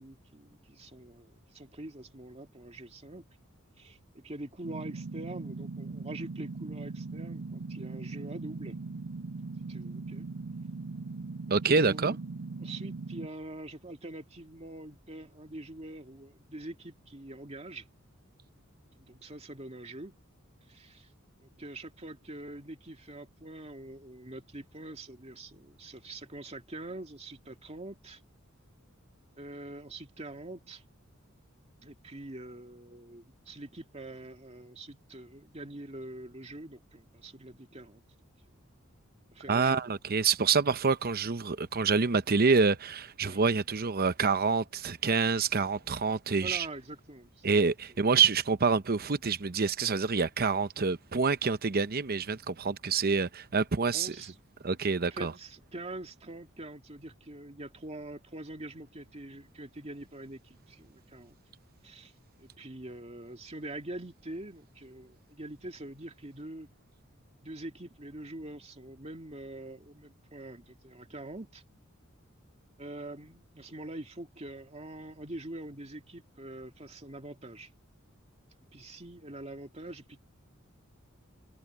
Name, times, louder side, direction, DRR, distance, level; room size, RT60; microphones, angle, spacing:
voice 1, 0.0-3.2 3.8-8.8 9.7-10.3 11.6-12.2 12.6-17.8 19.1-20.1 20.7-21.1 21.4-28.2 29.4-30.8 31.8-38.0 39.3-39.8 43.2-43.4 46.4-47.4 53.9-54.5 55.0-61.4 61.8-62.1 62.4-66.7 67.4-71.6 72.8-77.7 78.7-80.2, right 1 dB, 30° right, 2.4 m, -44 dB
sound 1, 4.6-13.3, right 3 dB, 80° right, 0.6 m, -40 dB
voice 2, 11.5-12.1 39.5-46.7 47.4-54.1 54.6-55.3, right 5 dB, 45° right, 0.8 m, -27 dB
head